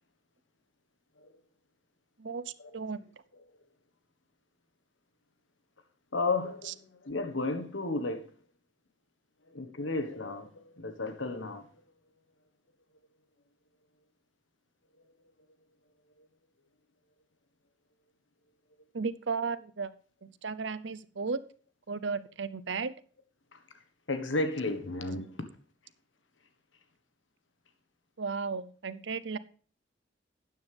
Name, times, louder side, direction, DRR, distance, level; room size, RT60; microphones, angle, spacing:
voice 1, 2.2-3.0 18.9-19.9 20.2-21.4 21.9-22.9 28.2-29.4, right 5 dB, 70° right, 0.7 m, -34 dB
voice 2, 6.1-8.4 9.5-11.7 16.2-16.3 23.5-23.6 24.1-25.5, left 3 dB, 80° left, 1.4 m, -33 dB
12.5 x 9.5 x 3.5 m
head